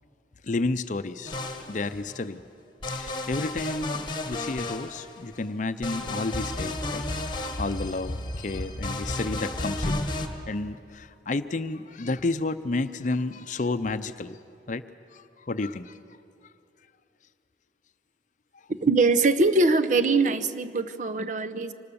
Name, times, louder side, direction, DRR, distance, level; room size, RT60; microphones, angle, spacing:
voice 1, 0.4-1.4 1.7-2.4 2.9-10.0 10.5-14.4 14.7-14.8 15.1-16.0, left 3 dB, 45° left, 11 dB, 0.6 m, -31 dB
sound 1, 1.3-2.1 2.8-5.3 5.8-10.3, left 2 dB, 25° left, 1.6 m, -32 dB
voice 2, 18.7-21.7, right 3 dB, 45° right, 9 dB, 0.8 m, -22 dB
25.0 x 19.5 x 7.0 m, 2.7 s
head